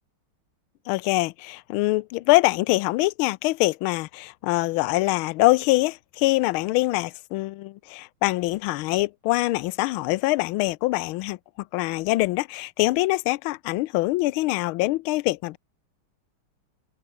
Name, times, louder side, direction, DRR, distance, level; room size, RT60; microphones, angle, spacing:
voice 1, 0.9-11.4 11.7-15.6, left 20 dB, 80° left, 1.4 m, -24 dB
open air
omnidirectional pair, 2.3 m